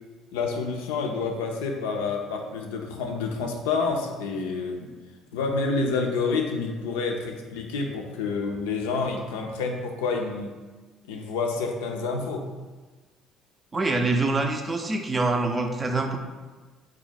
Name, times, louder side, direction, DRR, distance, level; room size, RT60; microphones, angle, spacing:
voice 1, 0.3-4.9 5.3-10.5 11.1-12.5, left 4 dB, 70° left, 2 dB, 0.4 m, -28 dB
voice 2, 13.7-16.2, right 3 dB, 25° right, 4 dB, 0.4 m, -25 dB
3.7 x 2.1 x 4.2 m, 1.3 s
figure-of-eight pair, 50°, 0 cm